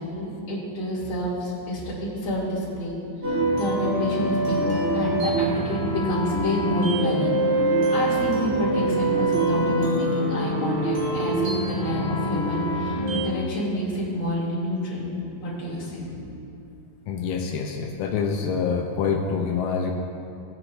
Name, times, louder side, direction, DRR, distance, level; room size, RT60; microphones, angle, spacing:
voice 1, 0.0-7.3 7.9-15.1 15.4-16.4, left 1 dB, 40° left, -7 dB, 3.3 m, -28 dB
sound 1, 3.2-13.2, right 2 dB, 45° right, 2.8 m, -25 dB
voice 2, 17.1-19.9, left 5 dB, 85° left, 2 dB, 2.3 m, -26 dB
18.0 x 10.0 x 2.6 m, 2.6 s
omnidirectional pair, 3.9 m